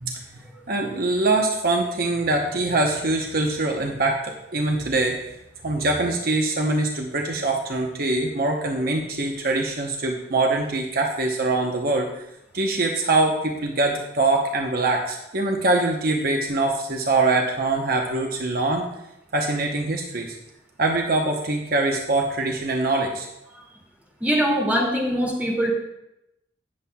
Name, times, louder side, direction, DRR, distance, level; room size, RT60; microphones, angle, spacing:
voice 1, 0.0-5.3 5.6-12.1 12.5-18.8 19.3-20.4 20.8-23.3, right 2 dB, 55° right, 1 dB, 0.9 m, -23 dB
voice 2, 24.2-25.7, equal, 10° right, -3 dB, 2.3 m, -22 dB
17.0 x 7.5 x 2.3 m, 0.87 s
head